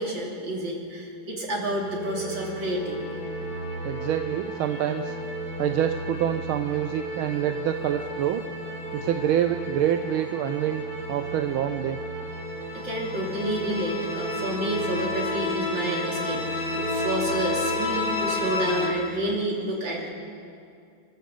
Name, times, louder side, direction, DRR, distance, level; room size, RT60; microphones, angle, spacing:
voice 1, 0.0-3.0 12.8-20.1, right 1 dB, 65° right, -3 dB, 4.1 m, -29 dB
sound 1, 1.5-18.9, left 1 dB, 80° left, 3.9 m, -32 dB
voice 2, 3.8-5.2 5.6-8.4 8.9-12.0, right 10 dB, 90° right, 8 dB, 1.5 m, -26 dB
27.5 x 12.5 x 7.8 m, 2.5 s
omnidirectional pair, 2.2 m